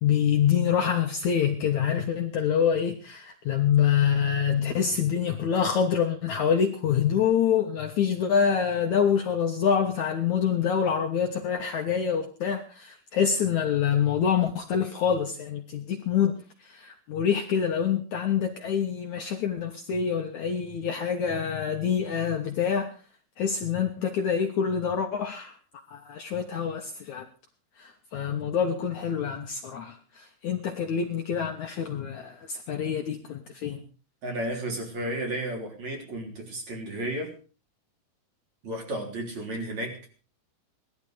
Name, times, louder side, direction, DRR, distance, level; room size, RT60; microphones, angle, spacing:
voice 1, 0.0-16.4 16.7-22.9 23.4-25.5 25.9-27.3 27.8-33.8, left 7 dB, 60° left, 3 dB, 2.2 m, -26 dB
voice 2, 34.2-37.3 38.6-40.0, right 1 dB, 45° right, 2 dB, 4.6 m, -33 dB
19.0 x 12.5 x 5.0 m, 0.37 s
omnidirectional pair, 4.6 m